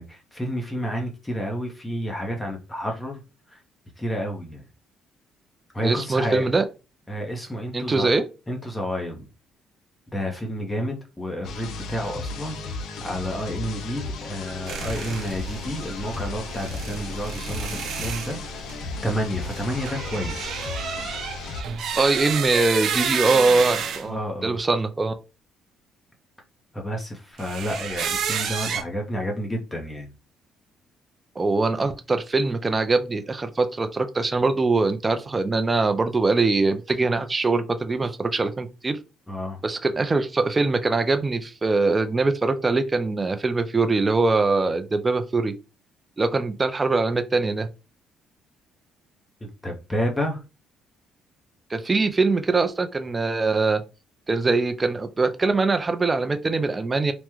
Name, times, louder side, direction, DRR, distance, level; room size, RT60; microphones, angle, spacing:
voice 1, 0.0-3.2 3.5-3.6 4.0-4.6 5.7-6.5 7.1-8.1 8.5-9.3 10.1-18.7 19.0-20.5 24.0-24.5 26.7-30.1 39.3-39.6 49.4-50.4, equal, 10° left, 0.6 m, -30 dB
voice 2, 5.8-6.6 7.7-8.3 22.0-25.1 31.4-39.0 39.6-45.5 46.2-47.7 51.7-53.8 54.3-57.1, right 3 dB, 20° right, 0.3 m, -22 dB
sound 1, 11.4-21.6, left 4 dB, 70° left, 0.5 m, -35 dB
sound 2, 14.7-24.0 27.4-28.8, right 7 dB, 65° right, 0.6 m, -30 dB
3.4 x 2.0 x 3.0 m
cardioid pair, 120°, 0 cm